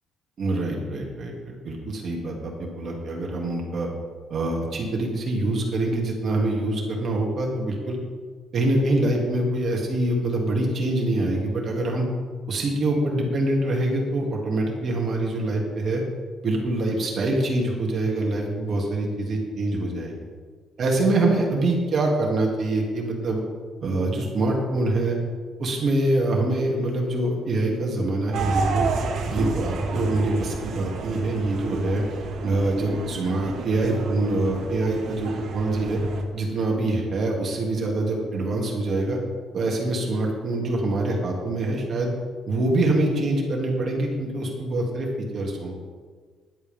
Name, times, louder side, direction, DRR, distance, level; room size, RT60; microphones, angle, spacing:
voice 1, 0.4-3.9 4.3-8.0 8.5-12.1 12.5-16.0 16.4-20.1 20.8-23.4 23.8-25.2 25.6-28.9 29.3-32.0 32.4-36.0 36.3-39.2 39.5-42.1 42.5-45.7, right 2 dB, 45° right, -1 dB, 2.7 m, -25 dB
sound 1, 28.3-36.2, right 3 dB, 70° right, 2.2 m, -29 dB
16.0 x 11.5 x 3.7 m, 1.6 s
cardioid pair, 150°, 0 cm